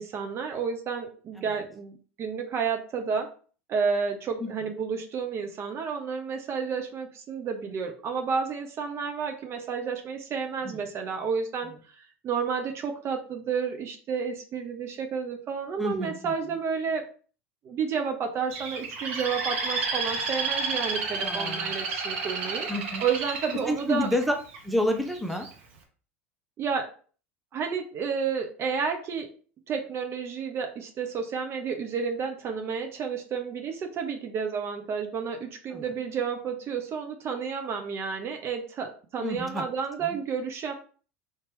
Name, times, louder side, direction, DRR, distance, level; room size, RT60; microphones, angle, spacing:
voice 1, 0.0-3.3 3.7-17.0 17.6-22.7 23.0-24.1 26.6-26.9 27.5-29.3 29.7-40.7, right 6 dB, 40° right, 5 dB, 0.6 m, -31 dB
voice 2, 15.8-16.3 21.2-21.7 22.7-23.0 23.7-24.3 24.6-25.5 35.7-35.9 39.2-39.6 40.0-40.2, left 1 dB, ahead, 3 dB, 0.7 m, -29 dB
Bird, 18.5-24.6 25.1-25.5, right 4 dB, 65° right, 0.8 m, -31 dB
3.2 x 2.8 x 3.4 m, 0.41 s
figure-of-eight pair, 75°, 7 cm